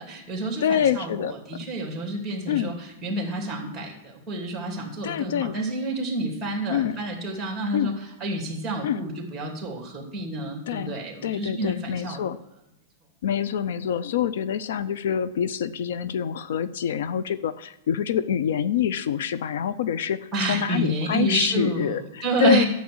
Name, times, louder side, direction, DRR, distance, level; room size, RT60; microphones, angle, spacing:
voice 1, 0.0-12.2 20.3-22.7, right 2 dB, 10° right, 2 dB, 2.8 m, -29 dB
voice 2, 0.6-1.3 2.5-2.7 5.0-5.6 6.7-7.0 7.7-8.0 8.8-9.0 10.7-12.4 13.2-22.6, left 8 dB, 70° left, 15 dB, 0.5 m, -26 dB
11.0 x 7.3 x 7.8 m, 0.92 s
supercardioid pair, 150°, 0 cm